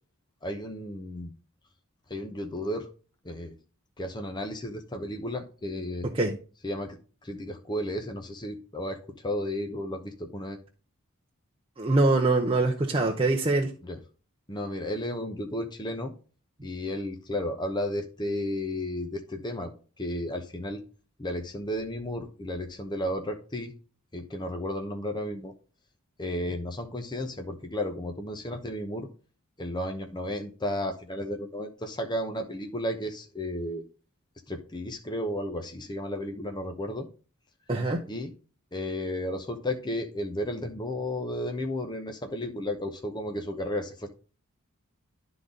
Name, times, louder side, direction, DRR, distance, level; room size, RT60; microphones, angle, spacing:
voice 1, 0.4-1.3 2.1-2.9 3.2-3.6 4.0-6.1 6.6-10.6 13.8-14.0 14.5-16.1 16.6-20.8 21.2-23.7 24.1-25.5 26.2-29.1 29.6-33.8 34.5-37.1 38.1-38.3 38.7-44.1, left 1 dB, 20° left, 0.8 m, -33 dB
voice 2, 6.0-6.4 11.8-13.7 37.7-38.1, right 2 dB, 25° right, 0.7 m, -24 dB
11.5 x 4.0 x 3.7 m
head